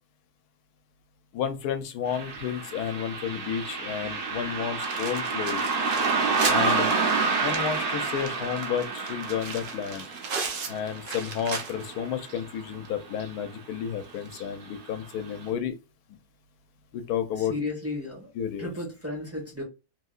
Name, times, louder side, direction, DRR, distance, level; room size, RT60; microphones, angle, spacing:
voice 1, 1.3-5.7 6.5-6.9 7.4-10.1 10.7-15.8 16.9-17.5 18.4-18.7, left 8 dB, 90° left, 1.2 m, -31 dB
Car passing by, 2.1-12.9 13.2-13.3 14.2-14.4 14.9-15.0 15.5-15.6, right 4 dB, 75° right, 1.5 m, -29 dB
sound 1, 4.8-12.0 12.4-12.5 12.8-12.9 14.1-14.3, right 5 dB, 50° right, 0.6 m, -36 dB
voice 2, 17.4-18.3 18.6-19.6, left 2 dB, 10° right, 1.0 m, -34 dB
3.4 x 2.8 x 2.4 m
omnidirectional pair, 1.6 m